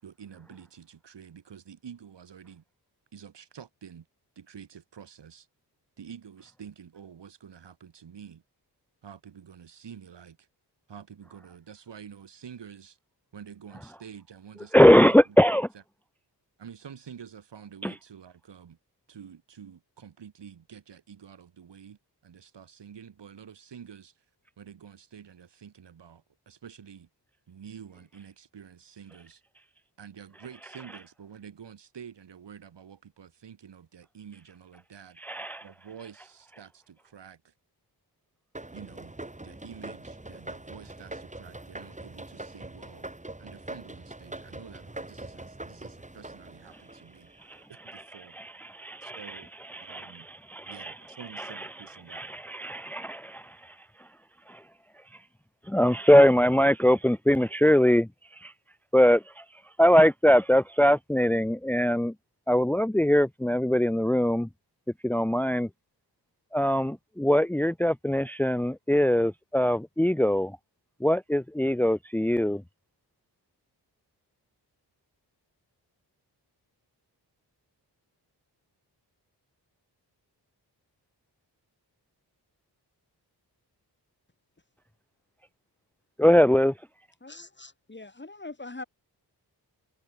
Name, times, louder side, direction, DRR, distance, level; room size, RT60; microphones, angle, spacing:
voice 1, 0.0-2.6 3.1-4.1 4.4-5.5 6.0-8.4 9.0-10.5 10.9-13.0 13.3-15.6 16.6-18.8 19.1-24.1 24.6-27.1 27.5-29.4 30.0-35.2 35.6-37.5 38.7-39.1 39.4-43.1 43.4-47.3 47.7-48.4 49.0-49.5 49.8-50.3 50.7-52.2, right 8 dB, 90° right, 7.0 m, -48 dB
voice 2, 14.7-15.7 17.8-17.9 35.2-35.6 47.5-47.6 47.9-48.0 48.4-49.4 49.7-50.9 51.4-51.7 52.1-53.7 54.5-54.6 55.7-58.1 58.4-58.5 58.9-59.4 59.8-62.1 62.5-64.5 65.0-65.7 66.5-70.6 71.0-72.6 86.2-86.7, equal, 5° left, 0.8 m, -22 dB
sound 1, 38.5-47.6, right 2 dB, 15° right, 3.7 m, -43 dB
voice 3, 87.2-88.8, left 2 dB, 25° left, 4.6 m, -42 dB
cardioid pair, 70°, 41 cm